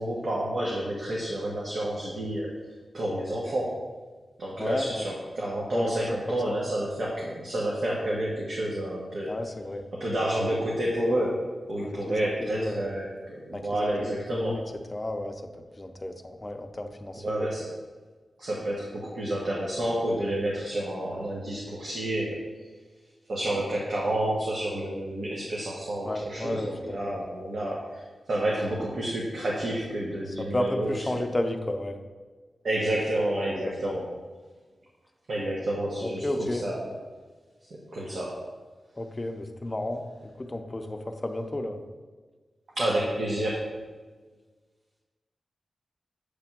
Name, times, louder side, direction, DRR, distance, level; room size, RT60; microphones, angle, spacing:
voice 1, 0.0-2.5 2.9-3.8 4.4-9.3 9.9-11.4 11.7-14.6 17.2-17.7 18.4-22.5 23.3-28.0 28.3-31.2 32.6-34.1 35.3-37.0 37.7-38.4 42.8-43.6, right 1 dB, 65° right, -4 dB, 1.2 m, -29 dB
voice 2, 4.6-5.1 5.7-6.6 9.3-9.8 11.8-12.9 13.5-14.6 14.9-15.4 15.8-17.5 26.0-27.3 27.6-27.8 30.5-32.0 33.6-33.9 36.0-36.7 39.0-41.8, left 1 dB, 20° left, 4 dB, 0.6 m, -32 dB
8.1 x 3.4 x 6.0 m, 1.4 s
wide cardioid pair, 125°, 0 cm